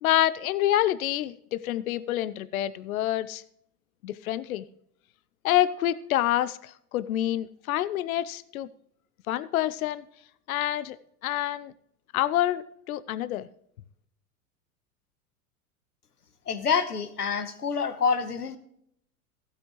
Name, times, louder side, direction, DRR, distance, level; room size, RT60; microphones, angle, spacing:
voice 1, 0.0-3.4 4.0-4.6 5.4-8.7 9.3-10.0 10.5-11.0 11.2-11.7 12.1-13.5, left 13 dB, 65° left, 16 dB, 0.7 m, -27 dB
voice 2, 16.5-18.6, left 5 dB, 90° left, 12 dB, 1.1 m, -27 dB
15.5 x 8.5 x 3.0 m, 0.71 s
figure-of-eight pair, 90°, 45 cm